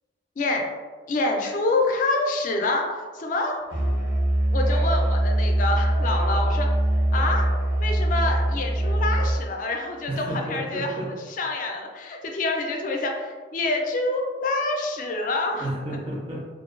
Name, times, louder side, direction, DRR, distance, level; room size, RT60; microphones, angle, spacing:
voice 1, 0.4-0.7 1.1-3.6 4.5-6.7 7.1-7.5 7.8-15.6, left 2 dB, 45° left, 2 dB, 0.3 m, -27 dB
Musical instrument, 3.7-9.4, right 1 dB, 75° right, 0.7 m, -22 dB
voice 2, 10.1-11.1 15.5-16.5, right 1 dB, 30° right, -4 dB, 0.4 m, -31 dB
2.5 x 2.2 x 2.3 m, 1.4 s
head